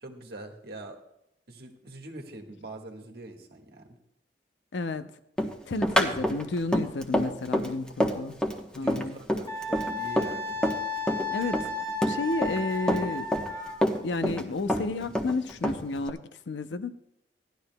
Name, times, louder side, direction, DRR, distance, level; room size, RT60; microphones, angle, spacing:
voice 1, 0.0-1.0 1.5-4.0 8.7-10.6, right 2 dB, 60° right, 2 dB, 1.4 m, -43 dB
voice 2, 4.7-5.1 5.7-8.3 8.8-9.2 11.3-11.6 12.1-13.3 14.0-16.2 16.5-16.9, left 3 dB, 85° left, 11 dB, 0.6 m, -31 dB
Run, 5.4-10.8 11.1-12.6 12.9-14.4 14.7-16.1, equal, 5° left, 0.9 m, -27 dB
Wind instrument woodwind instrument, 9.5-13.8, left 3 dB, 25° left, 1.5 m, -34 dB
17.0 x 11.5 x 2.2 m, 0.84 s
head